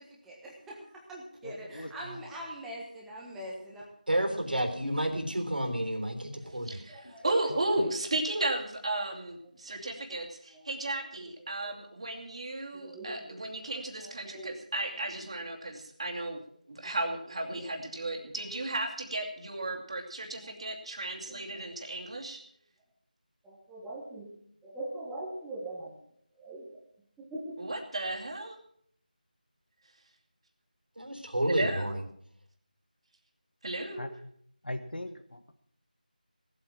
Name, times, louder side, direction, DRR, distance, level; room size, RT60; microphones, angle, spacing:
voice 1, 0.0-3.8 4.5-4.7 6.4-7.4 10.1-10.2 10.5-11.0 11.6-11.8 12.7-13.6 14.0-14.6 15.5-15.6 16.8-16.9 17.5-17.7 20.4-20.6 21.3-21.7 23.4-24.3 24.6-25.9 26.4-26.8 27.3-27.6, right 1 dB, 5° right, -5 dB, 1.5 m, -43 dB
voice 2, 1.4-2.3 7.0-7.2 7.5-7.9 33.9-34.1 34.6-35.5, left 1 dB, 85° left, 9 dB, 1.5 m, -41 dB
voice 3, 4.1-6.8 31.0-32.0, right 1 dB, 75° right, 5 dB, 3.5 m, -30 dB
voice 4, 6.6-16.4 16.7-22.4 27.6-28.6 31.5-31.9 33.6-34.1, right 2 dB, 40° right, 2 dB, 2.6 m, -34 dB
18.0 x 8.5 x 7.4 m, 0.65 s
figure-of-eight pair, 170°, 5 cm